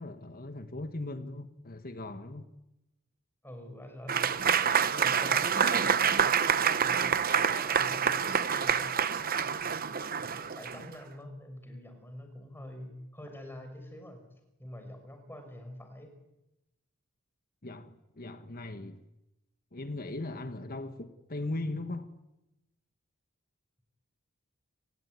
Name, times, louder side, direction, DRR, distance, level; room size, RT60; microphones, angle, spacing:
voice 1, 0.0-2.5 17.6-19.0 19.7-22.1, left 2 dB, 45° left, 1.5 m, -38 dB
voice 2, 3.4-7.0 7.3-9.7 10.3-14.2 14.6-16.1, left 1 dB, 10° left, 5.7 m, -46 dB
Applause / Crowd, 4.1-10.9, right 7 dB, 45° right, 1.0 m, -27 dB
29.5 x 17.5 x 9.6 m
head